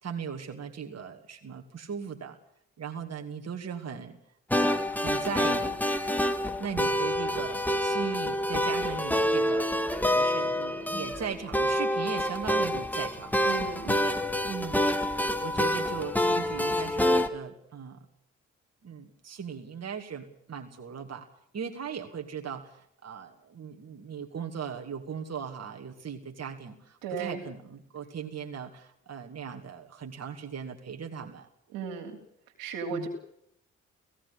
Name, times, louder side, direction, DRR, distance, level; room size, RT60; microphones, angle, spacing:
voice 1, 0.0-2.4 2.8-4.2 4.6-5.8 6.6-9.7 10.0-13.4 14.4-14.9 15.4-18.0 18.8-21.3 21.5-31.5 32.9-33.1, right 7 dB, 50° right, 3 dB, 2.6 m, -38 dB
sound 1, 4.5-17.3, left 1 dB, 5° left, 2.1 m, -27 dB
voice 2, 13.4-14.0 27.0-27.4 31.7-32.2 32.6-33.1, right 5 dB, 85° right, 3 dB, 3.3 m, -35 dB
16.5 x 16.0 x 9.9 m, 0.71 s
hypercardioid pair, 45°, 33 cm